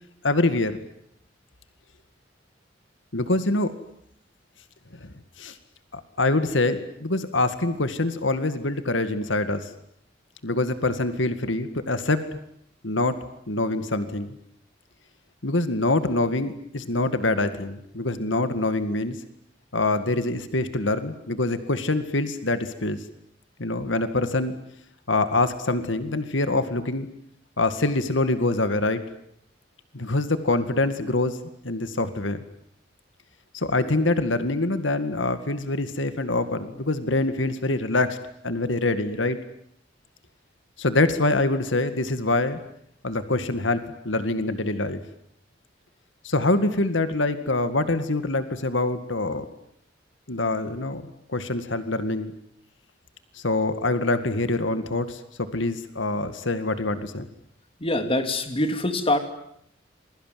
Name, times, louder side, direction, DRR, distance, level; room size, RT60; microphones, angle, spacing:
voice 1, 0.2-0.8 3.1-3.7 5.0-5.6 5.9-9.7 10.4-12.4 12.8-13.2 13.5-14.4 15.4-19.2 19.7-23.0 23.6-24.5 25.1-27.1 27.6-29.0 29.9-31.4 31.6-32.4 33.5-38.2 38.4-39.4 40.8-42.6 43.0-45.0 46.2-49.5 50.3-51.0 51.3-52.3 53.3-55.2 55.5-57.3, left 2 dB, 80° left, 11 dB, 2.1 m, -25 dB
voice 2, 57.8-59.2, left 1 dB, 30° left, 8 dB, 3.0 m, -24 dB
28.0 x 22.5 x 9.4 m, 0.72 s
head